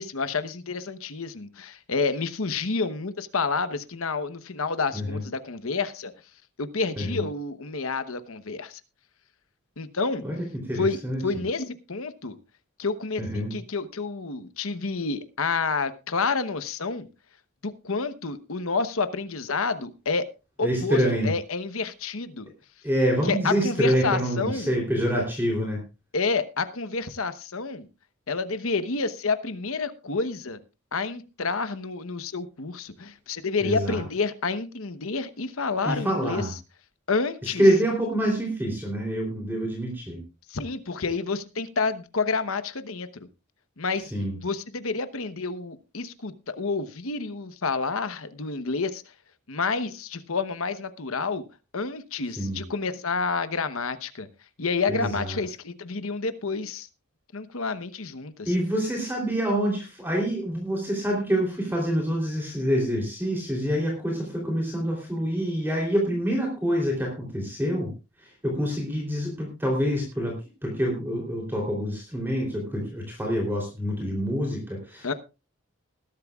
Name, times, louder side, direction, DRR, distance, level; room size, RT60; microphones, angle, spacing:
voice 1, 0.0-6.1 6.6-8.8 9.8-10.2 10.8-12.3 12.8-17.1 17.6-20.3 20.6-22.5 23.2-24.7 26.1-27.9 28.3-30.6 30.9-36.4 37.1-37.6 40.5-43.3 43.8-44.1 44.4-49.0 49.5-51.4 51.7-54.3 54.6-56.9 57.3-58.5 75.0-75.1, left 4 dB, 75° left, 12 dB, 1.0 m, -29 dB
voice 2, 10.2-11.2 13.2-13.5 20.6-21.3 22.8-25.8 33.6-34.0 35.8-36.5 37.4-40.2 44.1-44.4 52.3-52.6 54.9-55.4 58.4-67.9 68.2-70.3 70.6-75.1, equal, 10° right, 0 dB, 3.3 m, -26 dB
20.0 x 12.0 x 2.4 m, 0.29 s
head